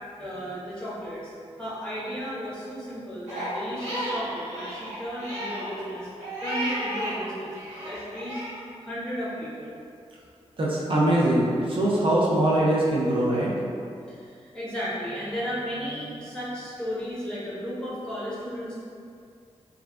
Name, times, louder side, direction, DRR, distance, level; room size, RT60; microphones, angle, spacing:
voice 1, 0.2-1.3 1.6-6.1 6.4-7.5 7.8-8.4 8.8-9.8 14.1-18.7, equal, 10° left, -9 dB, 1.3 m, -34 dB
Crying sobbing, 3.3-7.2 7.5-8.6, right 1 dB, 80° right, 1.1 m, -33 dB
voice 2, 10.6-13.5, right 1 dB, 50° right, -6 dB, 0.6 m, -22 dB
3.2 x 2.4 x 2.3 m, 2.4 s
cardioid pair, 55°, 11 cm